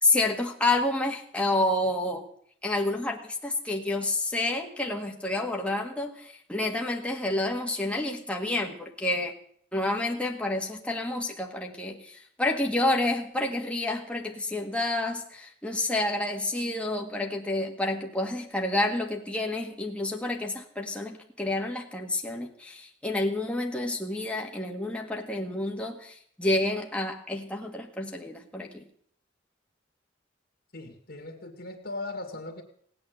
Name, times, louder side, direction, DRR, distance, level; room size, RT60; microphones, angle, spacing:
voice 1, 0.0-2.2 2.6-9.3 9.7-28.8, left 2 dB, 5° left, 0 dB, 1.7 m, -29 dB
voice 2, 30.7-32.6, left 2 dB, 55° left, 4 dB, 2.1 m, -38 dB
18.0 x 8.8 x 7.8 m, 0.63 s
head